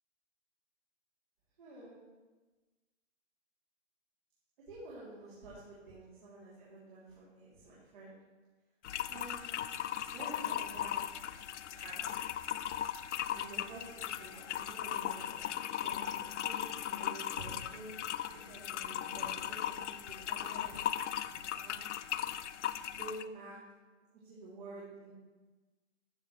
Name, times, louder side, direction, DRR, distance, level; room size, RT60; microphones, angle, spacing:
voice 1, 1.6-2.0 4.7-8.2 9.1-9.7 10.1-11.0 11.7-12.2 13.3-13.9 14.2-15.5 15.8-18.0 18.3-20.8 21.5-21.7 22.8-23.5 24.2-25.1, right 2 dB, 40° right, -9 dB, 2.8 m, -49 dB
sound 1, 8.8-23.3, left 10 dB, 65° left, 0.5 m, -38 dB
13.5 x 7.0 x 3.1 m, 1.2 s
hypercardioid pair, 175°, 38 cm